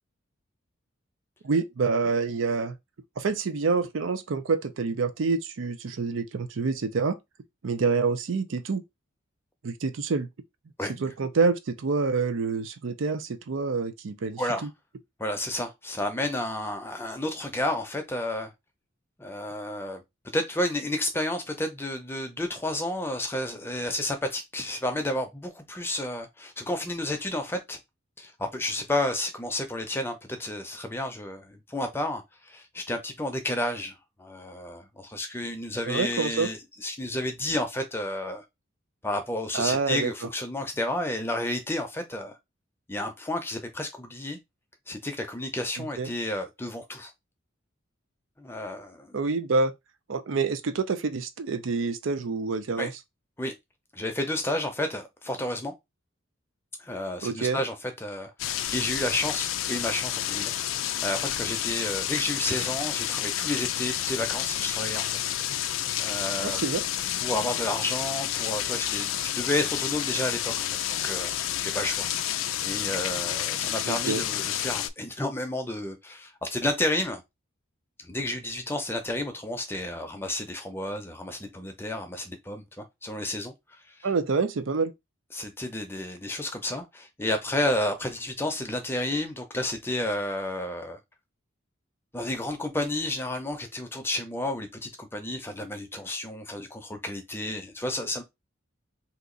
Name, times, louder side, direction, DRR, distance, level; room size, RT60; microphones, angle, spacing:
voice 1, 1.4-2.8 3.2-7.2 7.6-8.8 9.6-10.3 11.0-14.7 35.9-36.5 39.5-40.1 45.8-46.1 49.1-49.7 50.1-52.9 57.2-57.6 66.4-66.8 73.8-74.2 84.0-84.9, right 4 dB, 75° right, 0.5 m, -27 dB
voice 2, 14.4-14.7 15.2-18.5 19.2-20.0 20.3-27.8 28.2-38.4 39.0-42.4 42.9-44.4 44.9-47.1 48.4-49.2 52.8-52.9 53.4-53.5 53.9-55.7 56.8-65.2 66.0-66.6 67.2-71.3 71.6-72.1 72.6-77.2 78.0-83.5 83.9-84.0 85.3-91.0 92.1-98.2, left 1 dB, 10° left, 0.6 m, -31 dB
sound 1, 58.4-74.9, left 12 dB, 75° left, 0.4 m, -30 dB
2.9 x 2.4 x 3.8 m
head